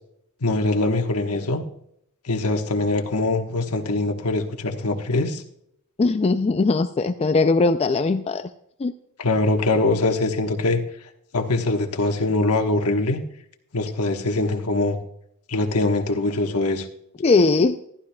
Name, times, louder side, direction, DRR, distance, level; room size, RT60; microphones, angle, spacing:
voice 1, 0.4-1.6 2.2-5.4 9.2-10.8 11.3-13.2 13.7-15.0 15.5-16.9, left 2 dB, 80° left, 4 dB, 1.2 m, -23 dB
voice 2, 6.0-8.5 8.8-8.9 17.2-17.8, left 3 dB, 30° left, 9 dB, 0.3 m, -20 dB
14.5 x 11.5 x 2.3 m, 0.73 s
head